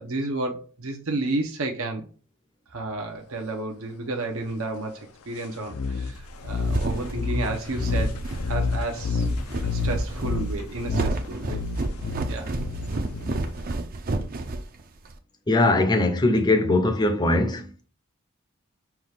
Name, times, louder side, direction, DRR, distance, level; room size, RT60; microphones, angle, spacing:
voice 1, 0.0-2.1 2.7-8.2 8.5-9.3 9.6-11.6 12.2-12.6, right 2 dB, 70° right, 0.8 m, -31 dB
sound 1, 5.7-13.7, left 4 dB, 85° left, 0.6 m, -29 dB
sound 2, 6.2-15.2, right 2 dB, 40° right, 0.5 m, -31 dB
voice 2, 15.5-17.8, left 2 dB, 20° left, 0.6 m, -21 dB
5.8 x 2.4 x 3.3 m
head